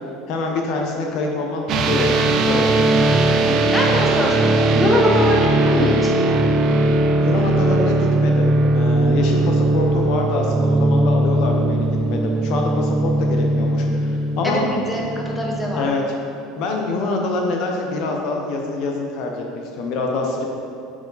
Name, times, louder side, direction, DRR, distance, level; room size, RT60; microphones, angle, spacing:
voice 1, 0.3-2.7 7.2-14.6 15.7-16.0 16.6-19.4 19.8-20.4, left 2 dB, 65° left, 1 dB, 0.8 m, -25 dB
sound 1, 1.7-15.9, right 2 dB, 50° right, 0.5 m, -19 dB
voice 2, 3.4-6.1 14.4-15.9, left 1 dB, 5° left, -3 dB, 1.1 m, -23 dB
6.3 x 4.9 x 4.0 m, 2.6 s
supercardioid pair, 115°, 0 cm